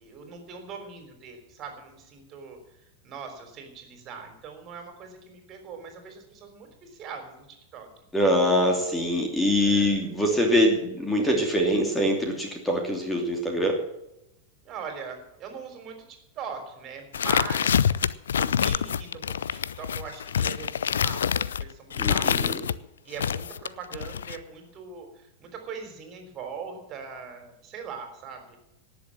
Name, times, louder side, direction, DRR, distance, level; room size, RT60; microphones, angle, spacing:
voice 1, 0.0-2.6 3.0-7.9 9.6-10.0 14.6-17.8 18.3-22.6 23.0-28.6, right 6 dB, 35° right, 4 dB, 3.7 m, -41 dB
voice 2, 8.1-13.8 22.0-22.6, equal, 10° left, 2 dB, 2.8 m, -24 dB
sound 1, 17.1-22.8 23.2-24.4, left 8 dB, 65° left, 0.5 m, -26 dB
18.5 x 7.2 x 7.5 m, 0.85 s
figure-of-eight pair, 90°, 0 cm